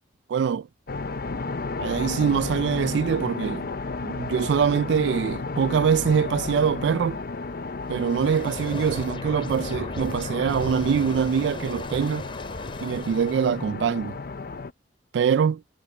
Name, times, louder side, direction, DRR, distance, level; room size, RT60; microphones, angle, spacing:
voice 1, 0.3-0.7 1.8-3.7 4.0-7.2 7.9-12.3 12.8-14.2 15.1-15.6, right 7 dB, 70° right, 0.3 m, -24 dB
sound 1, 0.9-14.7, left 3 dB, 55° left, 0.7 m, -33 dB
sound 2, 7.9-13.7, left 1 dB, 30° left, 5.1 m, -37 dB
head